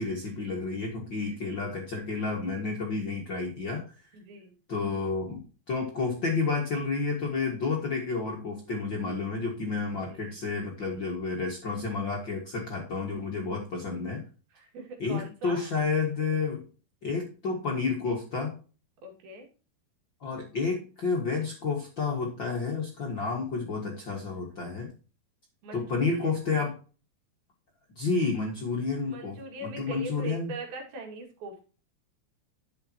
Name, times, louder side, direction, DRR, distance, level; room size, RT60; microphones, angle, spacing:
voice 1, 0.0-3.8 4.7-14.2 15.0-16.6 17.0-18.5 20.2-24.9 25.7-26.7 27.9-30.5, left 4 dB, 45° left, 0 dB, 1.6 m, -30 dB
voice 2, 4.1-4.5 9.8-10.4 14.5-15.7 19.0-19.5 25.6-26.4 29.1-31.7, right 3 dB, 75° right, 2 dB, 4.0 m, -42 dB
10.5 x 7.2 x 2.9 m, 0.35 s
omnidirectional pair, 4.4 m